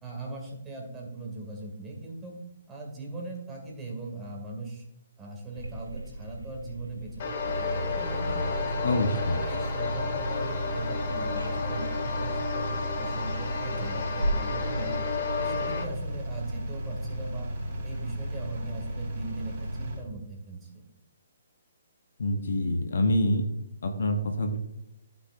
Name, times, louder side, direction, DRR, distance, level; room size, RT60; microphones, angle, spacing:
voice 1, 0.0-2.4 2.7-4.8 5.2-8.8 9.5-12.7 13.0-14.9 15.4-17.5 17.8-20.8, right 3 dB, 10° right, -1 dB, 2.3 m, -40 dB
sound 1, 5.5-16.2, right 1 dB, 85° right, 1.3 m, -39 dB
sound 2, 7.2-15.8, left 4 dB, 40° left, 1.7 m, -32 dB
Engine, 7.4-20.0, equal, 35° right, 3.6 m, -34 dB
voice 2, 8.8-9.4 22.2-23.5 23.8-24.6, left 1 dB, 55° left, 6 dB, 1.0 m, -26 dB
14.5 x 5.9 x 2.5 m, 0.84 s
figure-of-eight pair, 130°, 0 cm